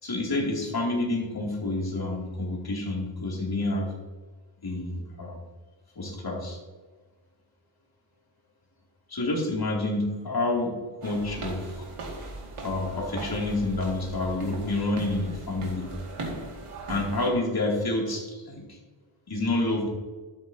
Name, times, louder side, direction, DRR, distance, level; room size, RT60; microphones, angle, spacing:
voice 1, 0.0-3.9 4.6-5.4 6.0-6.6 9.1-11.9 12.6-15.9 16.9-18.8 19.3-19.9, left 2 dB, 45° left, -2 dB, 2.6 m, -28 dB
sound 1, 11.0-17.3, right 2 dB, 85° right, 2.1 m, -39 dB
12.5 x 8.4 x 2.7 m, 1.3 s
wide cardioid pair, 115°, 50 cm